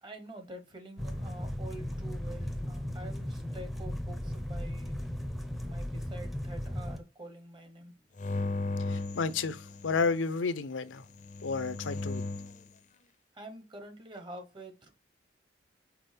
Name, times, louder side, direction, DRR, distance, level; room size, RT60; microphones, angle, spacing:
voice 1, 0.0-5.1 5.6-8.0 13.3-14.9, right 1 dB, 25° right, 1.1 m, -47 dB
sound 1, 1.0-7.0, left 1 dB, ahead, 0.6 m, -36 dB
sound 2, 8.2-10.1 11.1-12.6, left 2 dB, 40° left, 0.6 m, -36 dB
voice 2, 8.9-11.1 11.4-12.3, left 4 dB, 80° left, 0.6 m, -31 dB
6.0 x 4.7 x 3.3 m
head